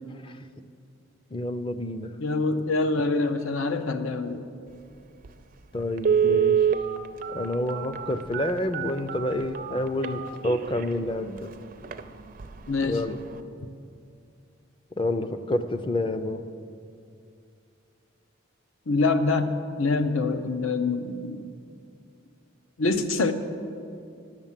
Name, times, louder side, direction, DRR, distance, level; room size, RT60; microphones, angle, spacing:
voice 1, 1.3-2.1 5.7-6.6 7.3-11.5 12.8-13.2 15.0-16.4, left 1 dB, 25° left, 10 dB, 0.5 m, -28 dB
voice 2, 2.2-4.4 12.7-13.0 18.9-21.5 22.8-23.3, left 3 dB, 85° left, 9 dB, 0.7 m, -25 dB
Telephone, 5.2-5.3 6.0-10.8 11.4-11.5 11.8-12.0 12.4-12.7 13.0-13.1, right 8 dB, 40° right, 0.4 m, -25 dB
11.0 x 7.2 x 7.4 m, 2.4 s
head